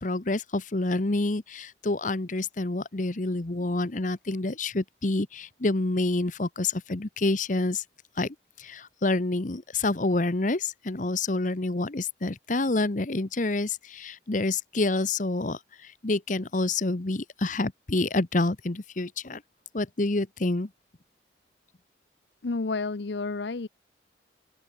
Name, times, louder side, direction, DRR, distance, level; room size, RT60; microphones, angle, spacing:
voice 1, 0.0-7.8 8.2-19.4 19.7-20.7, left 2 dB, 45° left, 1.0 m, -28 dB
voice 2, 22.4-23.7, left 3 dB, 75° left, 0.7 m, -30 dB
open air
head